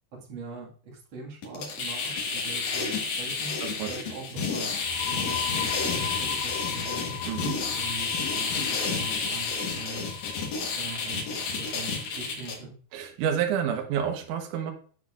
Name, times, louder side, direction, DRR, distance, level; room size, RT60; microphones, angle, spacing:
voice 1, 0.1-3.6 3.8-4.7 5.0-7.2 7.7-10.1 10.7-12.7, right 3 dB, 45° right, -3 dB, 1.6 m, -42 dB
sound 1, 1.4-12.6, left 4 dB, 65° left, 1.9 m, -30 dB
voice 2, 3.6-3.9 7.3-7.6 12.9-14.7, right 8 dB, 70° right, 3 dB, 1.9 m, -29 dB
sound 2, 4.7-12.2, left 12 dB, 85° left, 2.1 m, -40 dB
7.8 x 7.1 x 2.4 m, 0.43 s
omnidirectional pair, 4.8 m